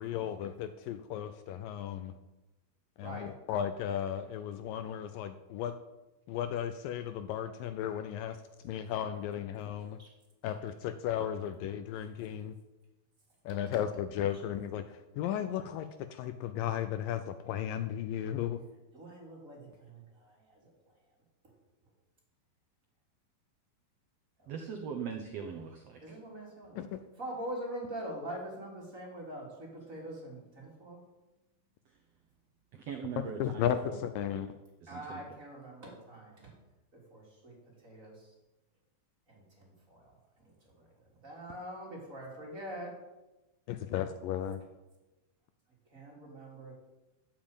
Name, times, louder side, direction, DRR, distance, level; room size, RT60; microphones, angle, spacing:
voice 1, 0.0-2.1 3.0-5.8 6.3-10.0 10.4-12.6 13.5-18.6 26.8-27.0 33.4-34.5 43.7-44.6, left 10 dB, 80° left, 10 dB, 2.2 m, -35 dB
voice 2, 18.9-20.7 21.4-21.5 24.4-24.5 26.0-26.8 27.2-31.0 34.9-36.5 36.9-37.6 37.8-38.3 39.3-40.1 40.4-42.9 45.9-46.7, right 1 dB, 20° right, -2 dB, 3.4 m, -44 dB
voice 3, 24.5-26.0 32.7-34.0 34.8-35.2, right 6 dB, 75° right, 4 dB, 1.4 m, -40 dB
12.0 x 7.4 x 9.0 m, 1.1 s
omnidirectional pair, 4.3 m